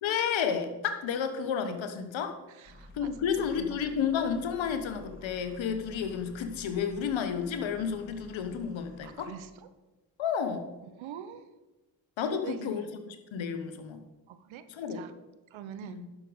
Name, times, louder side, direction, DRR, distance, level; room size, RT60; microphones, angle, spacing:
voice 1, 0.0-2.4 2.9-9.3 10.2-10.7 12.2-14.0 14.7-15.0 15.8-16.1, left 7 dB, 70° left, 8 dB, 1.3 m, -31 dB
voice 2, 2.5-3.8 9.0-9.5 10.9-11.5 12.3-12.9 14.3-15.1 15.5-16.0, right 9 dB, 70° right, 11 dB, 0.9 m, -44 dB
sound 1, 2.6-9.1, left 2 dB, 25° left, 3.4 m, -51 dB
11.5 x 6.3 x 5.2 m, 1.1 s
hypercardioid pair, 40°, 48 cm